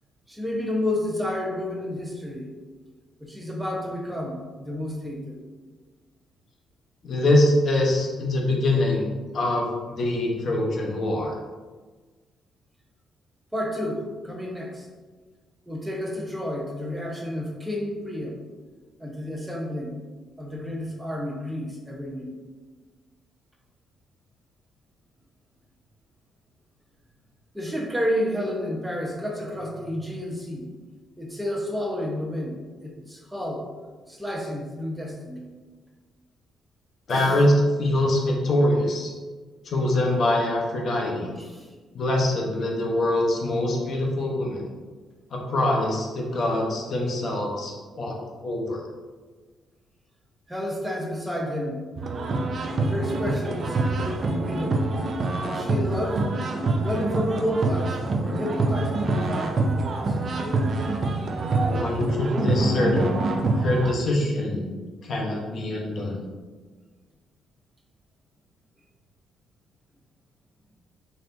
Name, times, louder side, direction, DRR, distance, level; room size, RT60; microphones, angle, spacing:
voice 1, 0.3-2.5 3.2-5.4 13.5-14.9 15.7-18.4 19.0-20.0 20.4-22.3 27.5-30.7 31.2-33.7 34.1-35.4 37.1-37.5 41.3-41.7 50.5-51.8 52.7-54.9 55.5-56.2 56.8-58.0 58.2-60.2, left 1 dB, 5° right, -1 dB, 0.8 m, -30 dB
voice 2, 7.0-9.1 9.3-11.4 37.1-37.5 37.8-39.1 39.6-41.3 41.9-44.6 45.3-48.1 48.4-48.8 61.7-63.1 63.6-64.7 65.0-66.2, left 1 dB, 55° left, -1 dB, 0.9 m, -24 dB
sound 1, 52.0-63.9, right 2 dB, 50° right, 0.4 m, -26 dB
4.2 x 3.3 x 2.6 m, 1.4 s
cardioid pair, 90°, 0 cm